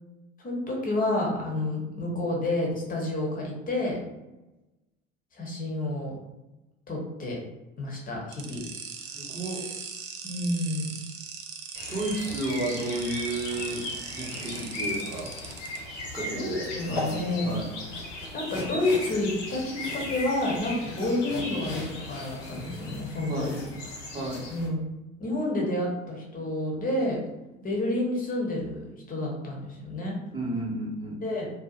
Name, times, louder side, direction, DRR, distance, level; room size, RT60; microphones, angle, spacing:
voice 1, 0.4-4.0 5.3-6.2 6.9-7.4 7.8-8.6 10.2-11.0 16.3-17.6 18.3-23.7 24.5-24.8 25.2-27.2 27.6-30.2 31.2-31.5, left 1 dB, 20° left, -1 dB, 0.8 m, -29 dB
sound 1, 8.3-15.8, right 6 dB, 40° right, 0.5 m, -40 dB
voice 2, 9.0-9.7 11.9-13.9 14.1-15.3 15.9-17.7 23.3-23.5 24.1-24.4 30.3-31.2, right 1 dB, 10° right, -6 dB, 0.8 m, -32 dB
sound 2, 11.7-24.7, left 2 dB, 65° left, 0.9 m, -37 dB
2.6 x 2.3 x 2.4 m, 1.0 s
figure-of-eight pair, 70°, 39 cm